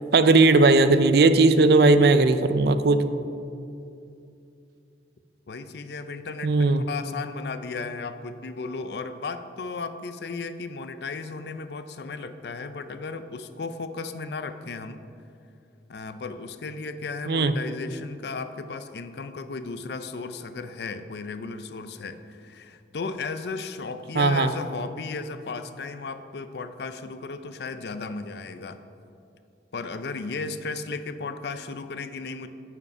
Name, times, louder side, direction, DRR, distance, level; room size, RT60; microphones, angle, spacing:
voice 1, 0.1-3.0 6.4-6.8 17.3-17.5 24.2-24.5, right 3 dB, 60° right, 11 dB, 0.4 m, -18 dB
voice 2, 5.5-6.5 6.9-15.0 15.9-28.8 29.7-32.5, left 4 dB, 65° left, 10 dB, 0.5 m, -35 dB
9.5 x 5.2 x 5.4 m, 2.6 s
head